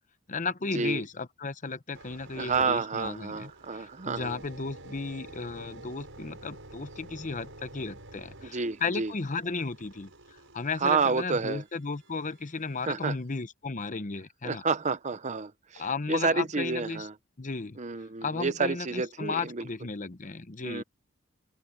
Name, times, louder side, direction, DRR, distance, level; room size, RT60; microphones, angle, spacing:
voice 1, 0.3-14.6 15.7-17.1 17.4-17.8 18.2-20.8, left 4 dB, 35° left, 0.9 m, -34 dB
sound 1, 1.9-12.9 13.4-13.7, right 2 dB, 65° right, 7.7 m, -49 dB
voice 2, 2.4-4.4 8.5-9.1 10.8-11.6 12.9-13.1 14.4-15.5 16.1-17.1 17.8-19.3 20.6-20.8, right 4 dB, 35° right, 0.7 m, -29 dB
head